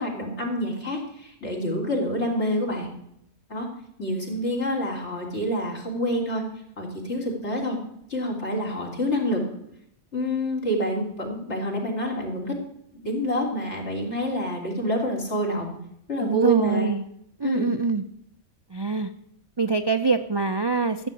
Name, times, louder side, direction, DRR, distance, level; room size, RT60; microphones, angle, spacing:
voice 1, 0.0-2.9 3.5-3.7 4.0-6.4 6.8-7.8 8.1-9.4 10.1-12.6 13.0-15.7 16.1-16.9 17.4-17.7, equal, 70° left, -1 dB, 3.4 m, -27 dB
voice 2, 16.2-17.0 17.4-18.0 18.7-19.1 19.6-21.1, right 4 dB, 35° right, 8 dB, 0.4 m, -24 dB
14.5 x 6.9 x 8.4 m, 0.74 s
omnidirectional pair, 1.2 m